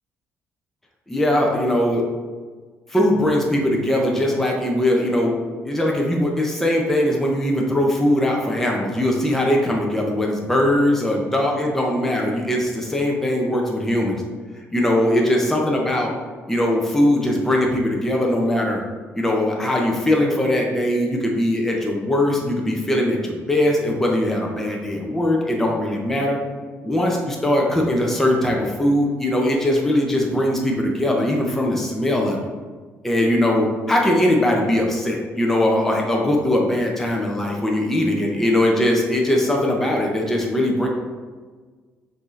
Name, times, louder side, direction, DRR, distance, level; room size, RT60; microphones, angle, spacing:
voice 1, 1.1-2.0 2.9-5.3 5.7-14.2 14.7-16.1 16.5-18.8 19.1-26.4 26.8-32.4 33.0-40.9, left 1 dB, 5° left, -1 dB, 0.6 m, -20 dB
5.8 x 2.7 x 3.1 m, 1.4 s
cardioid pair, 130°, 5 cm